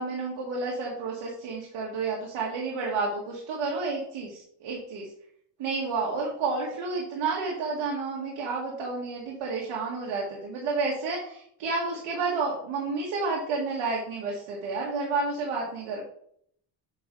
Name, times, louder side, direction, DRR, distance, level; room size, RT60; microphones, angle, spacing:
voice 1, 0.0-5.1 5.6-16.1, right 4 dB, 90° right, -3 dB, 2.1 m, -30 dB
8.5 x 5.3 x 3.9 m, 0.66 s
cardioid pair, 175°, 45 cm